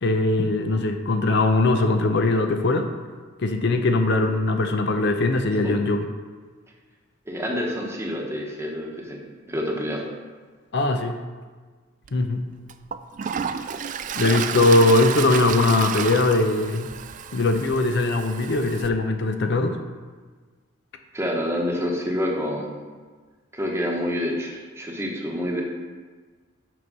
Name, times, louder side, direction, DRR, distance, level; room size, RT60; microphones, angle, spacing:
voice 1, 0.0-2.9 3.4-6.1 10.7-11.2 12.1-12.4 14.1-16.9 17.3-19.8, left 2 dB, 60° left, 6 dB, 0.6 m, -21 dB
voice 2, 7.3-9.2 9.5-10.0 21.1-22.8 23.5-25.6, equal, 15° right, -1 dB, 1.1 m, -27 dB
Toilet flush, 12.0-12.1 12.7-18.9, right 7 dB, 40° right, 0.3 m, -31 dB
6.1 x 6.1 x 5.4 m, 1.4 s
head